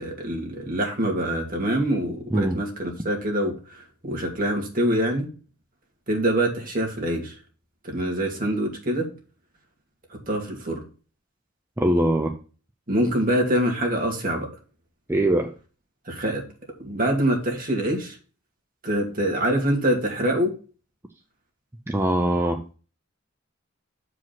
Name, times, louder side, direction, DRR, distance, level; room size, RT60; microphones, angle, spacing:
voice 1, 0.0-5.3 6.1-7.3 7.8-9.1 10.1-10.8 12.9-14.5 16.1-16.4 16.8-18.2 18.8-20.5, right 1 dB, 40° right, 1 dB, 2.4 m, -25 dB
voice 2, 11.8-12.4 15.1-15.5 21.9-22.7, right 1 dB, 10° right, 4 dB, 0.6 m, -22 dB
7.5 x 5.1 x 5.8 m, 0.36 s
head